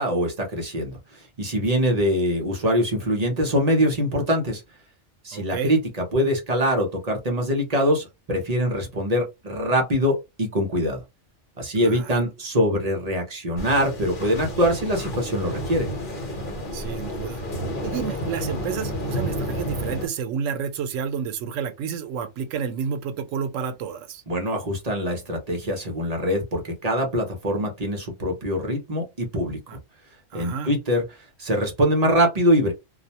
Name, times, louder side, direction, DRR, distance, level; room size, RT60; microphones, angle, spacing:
voice 1, 0.0-4.6 5.2-11.0 11.6-15.9 24.3-29.6 30.3-31.0 31.4-32.7, equal, 40° right, 0.6 m, -23 dB
voice 2, 5.3-5.7 11.8-12.2 16.7-17.4 17.8-24.2 29.7-29.8 30.3-30.7, right 7 dB, 90° right, 0.9 m, -30 dB
sound 1, 13.6-20.1, equal, 45° left, 1.0 m, -31 dB
2.3 x 2.1 x 2.8 m
omnidirectional pair, 1.3 m